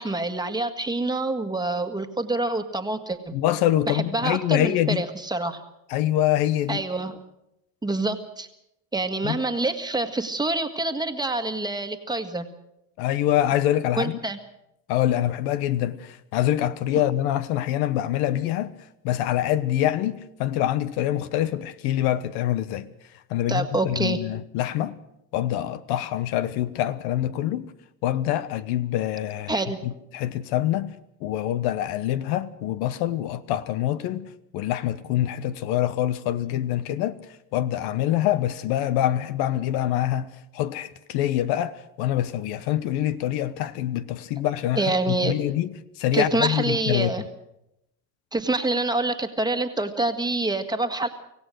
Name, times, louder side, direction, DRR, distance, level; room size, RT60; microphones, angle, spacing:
voice 1, 0.0-3.3 3.9-5.6 6.7-7.2 7.8-8.5 8.9-12.5 14.0-14.4 23.5-24.2 29.5-29.8 44.8-45.3 46.1-47.2 48.3-51.1, right 2 dB, 10° right, 1.7 m, -26 dB
voice 2, 3.3-5.0 5.9-6.8 9.2-9.4 13.0-14.2 14.9-18.7 19.0-22.9 23.3-24.9 25.3-27.7 28.0-30.9 31.2-37.2 37.5-47.1, left 12 dB, 70° left, 1.2 m, -25 dB
25.5 x 16.0 x 6.5 m
supercardioid pair, 110°, 40 cm